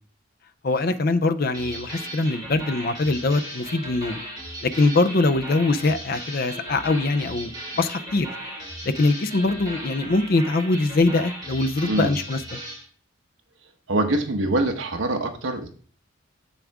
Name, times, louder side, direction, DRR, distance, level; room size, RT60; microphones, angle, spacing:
voice 1, 0.6-4.2 4.6-8.3 8.8-12.6, left 2 dB, 45° left, 12 dB, 0.5 m, -23 dB
sound 1, 1.5-12.8, right 1 dB, 20° right, 3.1 m, -37 dB
voice 2, 11.8-12.1 13.9-15.7, right 2 dB, 70° right, 4 dB, 1.2 m, -24 dB
7.6 x 7.0 x 3.5 m, 0.43 s
head